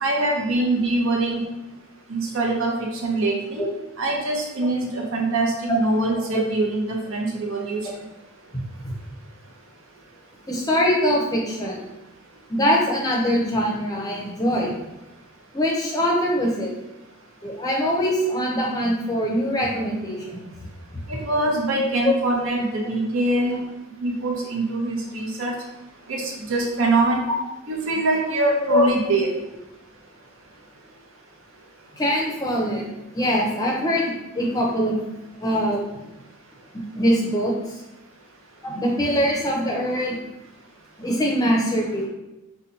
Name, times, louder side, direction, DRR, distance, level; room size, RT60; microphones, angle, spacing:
voice 1, 0.0-1.4 2.1-3.6 4.0-7.8 21.1-23.6 24.0-25.5 26.1-27.2 27.7-29.3, right 2 dB, 65° right, -1 dB, 0.7 m, -23 dB
voice 2, 10.5-11.8 12.5-14.8 15.5-16.7 17.4-20.4 22.0-22.1 28.7-28.8 31.9-32.9 33.1-34.9 35.4-35.8 36.7-37.8 38.6-40.2 41.0-42.1, equal, 15° left, -2 dB, 0.6 m, -23 dB
2.8 x 2.2 x 4.0 m, 0.94 s
head